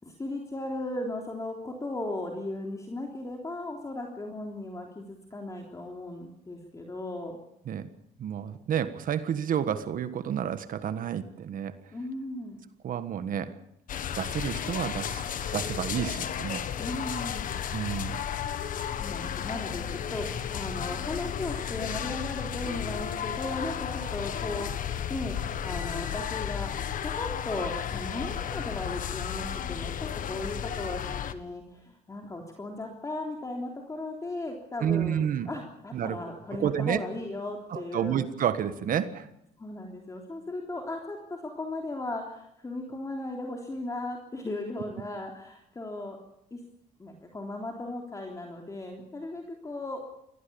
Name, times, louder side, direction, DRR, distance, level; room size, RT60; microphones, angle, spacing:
voice 1, 0.0-7.4 11.9-12.6 16.8-17.5 18.9-24.7 25.1-38.2 39.6-46.2 46.5-46.6 47.0-50.0, left 2 dB, 20° left, 1 dB, 3.4 m, -36 dB
voice 2, 8.2-11.8 12.8-13.5 14.2-15.2 15.5-16.6 17.7-18.1 34.8-35.5 35.9-36.2 36.5-37.0 37.7-39.3, right 9 dB, 55° right, 11 dB, 1.5 m, -30 dB
sound 1, 13.9-31.3, left 9 dB, 55° left, 1.6 m, -33 dB
24.0 x 17.5 x 7.1 m, 0.77 s
cardioid pair, 110°, 17 cm